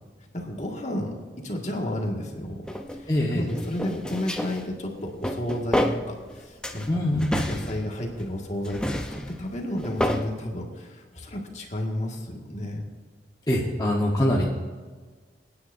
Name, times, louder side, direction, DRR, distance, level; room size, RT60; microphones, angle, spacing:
voice 1, 0.3-2.6 2.9-7.0 7.5-12.8, left 1 dB, 40° left, 0 dB, 2.0 m, -32 dB
sound 1, 2.7-3.0 3.5-4.7 5.0-6.3 6.6-8.3 8.6-10.3, equal, 5° left, 0.7 m, -29 dB
voice 2, 3.1-3.4 6.9-7.3 13.5-14.4, left 1 dB, 20° left, -4 dB, 1.2 m, -23 dB
25.5 x 9.7 x 2.7 m, 1.4 s
head